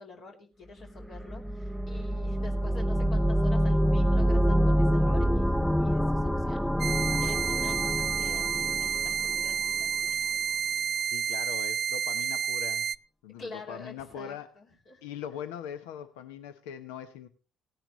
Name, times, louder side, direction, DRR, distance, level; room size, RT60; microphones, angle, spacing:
voice 1, 0.0-6.6 7.2-10.4 13.4-15.0, left 3 dB, 60° left, 0 dB, 2.8 m, -47 dB
sound 1, 1.0-9.8, equal, ahead, 0.5 m, -26 dB
sound 2, 6.8-13.0, right 8 dB, 50° right, 0.5 m, -30 dB
voice 2, 11.0-12.9 13.2-14.5 15.0-17.3, left 8 dB, 80° left, 9 dB, 0.9 m, -41 dB
17.0 x 10.0 x 3.1 m, 0.36 s
hypercardioid pair, 55°, 0 cm